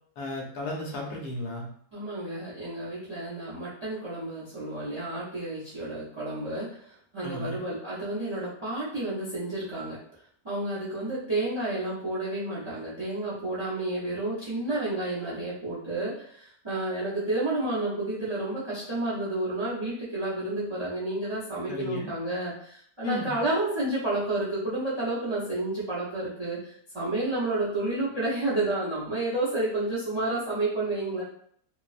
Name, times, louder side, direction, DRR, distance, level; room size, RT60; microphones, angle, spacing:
voice 1, 0.2-1.7 7.2-7.6 21.7-22.1 23.0-23.4, left 1 dB, 70° left, 0 dB, 1.1 m, -34 dB
voice 2, 1.9-6.7 7.1-10.0 10.4-31.2, right 2 dB, 40° right, -8 dB, 0.4 m, -30 dB
2.9 x 2.0 x 2.4 m, 0.65 s
omnidirectional pair, 1.8 m